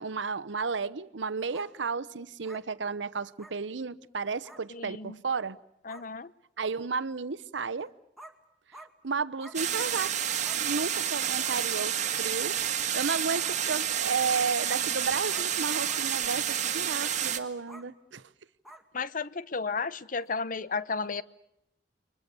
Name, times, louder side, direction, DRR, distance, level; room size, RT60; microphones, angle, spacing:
voice 1, 0.0-5.6 6.6-7.9 9.0-10.1 10.5-12.6 12.9-18.3, right 5 dB, 85° right, 0.9 m, -33 dB
sound 1, 1.5-1.7 2.4-2.6 3.4-3.5 4.4-4.6 5.5-5.6 5.9-6.1 7.7-7.8 8.2-8.3 8.7-8.9 9.4-9.6 10.4-10.6 11.4-11.6 13.4-13.6 14.3-14.5 15.3-15.5 15.9-16.0 17.0-17.2 17.7-17.9 18.6-18.8 20.2-20.3, right 1 dB, ahead, 2.2 m, -49 dB
voice 2, 4.7-5.2 5.9-6.3 18.9-21.2, left 4 dB, 50° left, 0.9 m, -33 dB
sound 2, 9.5-17.4, right 9 dB, 40° right, 1.8 m, -29 dB
29.0 x 23.5 x 6.9 m
head